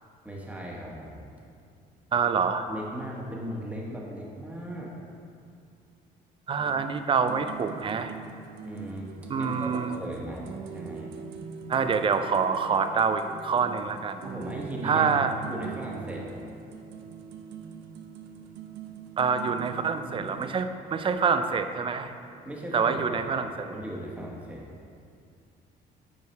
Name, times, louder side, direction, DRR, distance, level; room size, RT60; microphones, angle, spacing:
voice 1, 0.2-1.3 2.7-4.9 8.6-11.1 14.2-15.2 15.5-16.4 22.4-23.2 23.6-24.6, equal, 10° right, -3 dB, 1.4 m, -38 dB
voice 2, 2.1-2.7 6.5-8.1 9.3-9.9 11.7-14.2 14.8-15.3 19.2-22.1 22.7-23.8, right 5 dB, 30° right, 9 dB, 0.4 m, -26 dB
sound 1, 6.6-20.5, right 6 dB, 85° right, 0.6 m, -41 dB
8.3 x 4.7 x 4.6 m, 2.3 s
cardioid pair, 110°, 17 cm